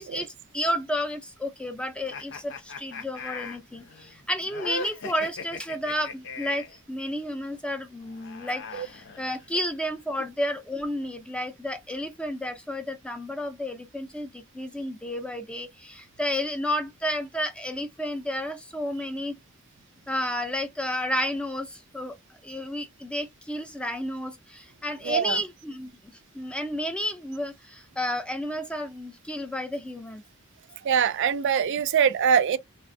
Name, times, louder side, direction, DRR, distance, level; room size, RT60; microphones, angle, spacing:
voice 1, 0.0-19.3 20.1-22.2 22.4-30.2, equal, 5° left, 0.4 m, -31 dB
sound 1, 2.1-6.8 8.0-9.7, left 4 dB, 60° left, 0.6 m, -39 dB
voice 2, 25.0-25.4 30.8-32.6, right 7 dB, 60° right, 0.3 m, -23 dB
3.2 x 2.1 x 2.5 m
head